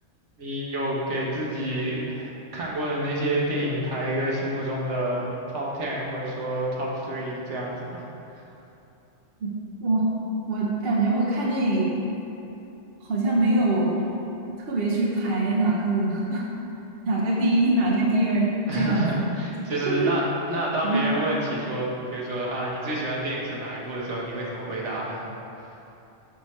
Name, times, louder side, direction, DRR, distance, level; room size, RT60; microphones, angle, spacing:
voice 1, 0.4-8.0 8.3-8.4 18.7-25.2, right 1 dB, 75° right, -5 dB, 1.3 m, -29 dB
voice 2, 10.5-12.1 13.0-14.0 14.6-16.4 17.1-19.0 19.9-20.1 20.8-21.1, right 2 dB, 55° right, -4 dB, 1.0 m, -23 dB
6.4 x 5.8 x 3.1 m, 2.9 s
omnidirectional pair, 1.2 m